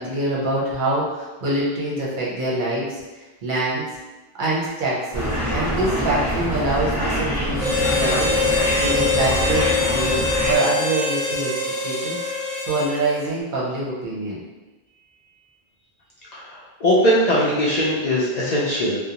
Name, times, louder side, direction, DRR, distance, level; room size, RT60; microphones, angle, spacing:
voice 1, 0.0-3.9 4.4-8.4 8.8-11.5 11.8-12.2 12.6-14.4, right 2 dB, 55° right, -6 dB, 0.8 m, -25 dB
sound 1, 5.1-10.5, equal, 25° left, 0.9 m, -25 dB
Harmonica, 7.6-13.2, left 3 dB, 25° right, 0.8 m, -24 dB
voice 2, 16.3-19.0, equal, 55° left, -7 dB, 0.5 m, -20 dB
2.4 x 2.1 x 2.8 m, 1.2 s
omnidirectional pair, 1.0 m